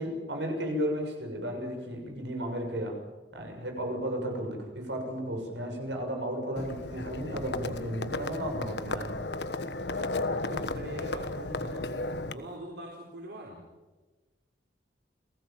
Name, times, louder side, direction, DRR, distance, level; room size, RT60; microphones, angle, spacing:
voice 1, 0.0-3.0 3.3-9.1, equal, 85° right, 3 dB, 6.8 m, -34 dB
Livestock farm animals working animals, 6.6-12.3, left 2 dB, 70° left, 1.4 m, -34 dB
voice 2, 10.4-11.9 12.3-13.6, right 1 dB, 65° right, -1 dB, 4.2 m, -43 dB
29.5 x 18.0 x 7.5 m, 1.2 s
head